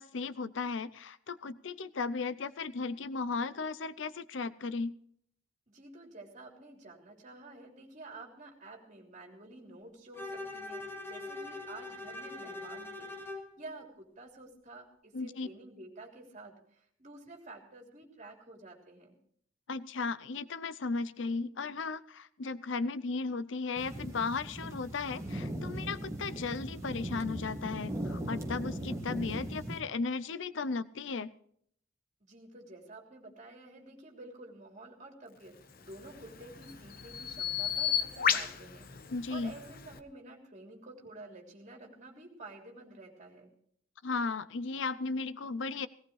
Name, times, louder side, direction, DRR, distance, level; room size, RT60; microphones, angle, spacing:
voice 1, 0.0-5.0 15.1-15.5 19.7-31.3 39.1-39.5 44.0-45.9, left 4 dB, 65° left, 16 dB, 0.6 m, -35 dB
voice 2, 5.7-19.1 32.2-35.5 35.8-38.9 39.3-43.5, right 2 dB, 40° right, 1 dB, 3.2 m, -50 dB
Bowed string instrument, 10.1-13.5, left 2 dB, 10° left, 2.3 m, -42 dB
sound 1, 23.8-29.8, right 1 dB, 15° right, 2.2 m, -38 dB
Bird vocalization bird call bird song, 35.8-40.0, left 8 dB, 50° left, 1.0 m, -34 dB
18.0 x 17.5 x 3.2 m, 0.64 s
head